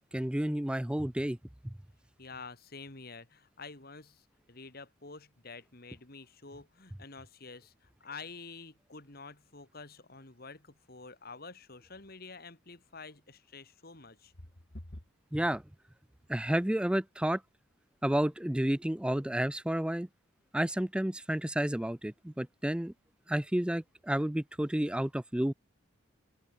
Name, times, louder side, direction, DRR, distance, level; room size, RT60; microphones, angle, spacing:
voice 1, 0.1-1.4 1.6-1.7 15.3-15.6 16.3-17.4 18.0-20.1 20.5-22.9 23.3-25.5, right 1 dB, 5° right, 0.4 m, -31 dB
voice 2, 2.2-14.3 14.7-15.0, left 4 dB, 50° left, 2.4 m, -48 dB
open air
head